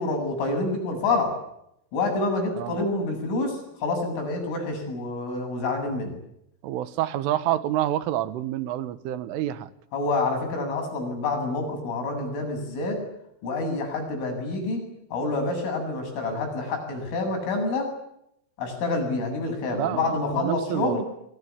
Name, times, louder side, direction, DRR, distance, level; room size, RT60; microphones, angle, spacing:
voice 1, 0.0-1.4 1.9-6.2 9.9-13.0 13.4-17.9 18.6-21.0, left 3 dB, 80° left, 4 dB, 10.5 m, -27 dB
voice 2, 6.6-9.7 19.7-21.0, right 13 dB, 80° right, 14 dB, 3.9 m, -28 dB
28.0 x 23.5 x 8.4 m, 0.78 s
omnidirectional pair, 5.6 m